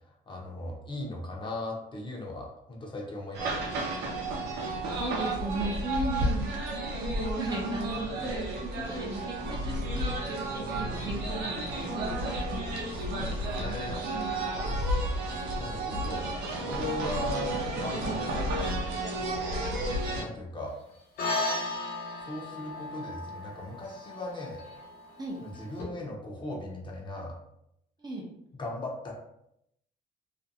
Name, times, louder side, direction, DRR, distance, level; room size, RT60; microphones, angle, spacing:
voice 1, 0.0-3.9 12.9-14.0 15.6-17.5 17.8-18.5 20.2-20.7 22.2-24.6 25.4-27.3 28.6-29.1, left 1 dB, 30° left, -1 dB, 0.7 m, -38 dB
sound 1, 3.3-20.2, right 1 dB, 85° right, 0.6 m, -32 dB
voice 2, 4.8-6.6 6.9-12.7 14.1-14.6 22.5-22.6 25.2-25.4 28.0-28.2, right 2 dB, 25° right, -1 dB, 0.5 m, -36 dB
sound 2, 21.2-25.8, left 2 dB, 65° left, 0.8 m, -35 dB
2.5 x 2.2 x 2.7 m, 0.78 s
cardioid pair, 110°, 17 cm